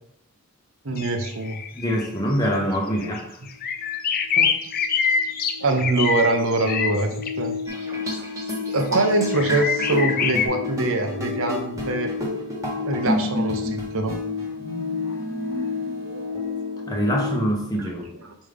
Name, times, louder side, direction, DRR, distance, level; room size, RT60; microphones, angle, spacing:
voice 1, 0.8-1.6 4.4-4.5 5.6-7.1 7.4-7.6 8.7-12.3 12.9-14.2 17.8-17.9 18.2-18.4, right 2 dB, 65° right, 5 dB, 0.8 m, -23 dB
sound 1, 1.0-2.1 2.4-2.5 2.9-3.2 3.5-7.3 8.5-8.6 9.3-10.5, left 6 dB, 40° left, 0.5 m, -25 dB
voice 2, 1.7-3.2 16.9-18.1, equal, 15° left, 0 dB, 0.9 m, -24 dB
sound 2, 3.8-3.9 4.2-17.4, left 5 dB, 75° left, 0.9 m, -32 dB
sound 3, 7.7-17.1, left 1 dB, 15° right, 1.1 m, -31 dB
5.3 x 5.2 x 3.4 m, 0.78 s
head